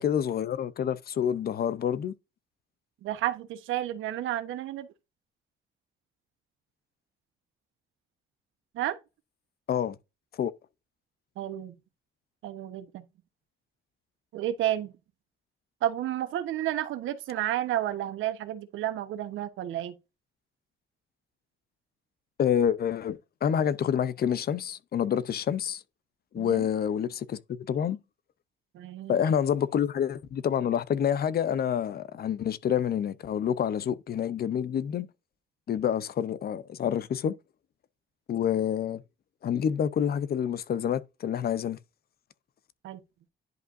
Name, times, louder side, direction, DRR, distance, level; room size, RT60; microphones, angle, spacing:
voice 1, 0.0-2.1 9.7-10.0 10.4-10.5 22.4-25.8 26.3-27.4 27.7-28.0 29.1-35.1 35.7-37.3 38.3-39.0 39.4-41.8, left 9 dB, 50° left, 0.6 m, -28 dB
voice 2, 3.0-4.9 8.7-9.0 11.4-11.7 12.4-13.0 14.3-14.9 15.8-19.9 26.4-26.7 28.7-29.2 42.8-43.0, right 12 dB, 85° right, 1.1 m, -31 dB
10.5 x 5.1 x 2.6 m
cardioid pair, 90°, 20 cm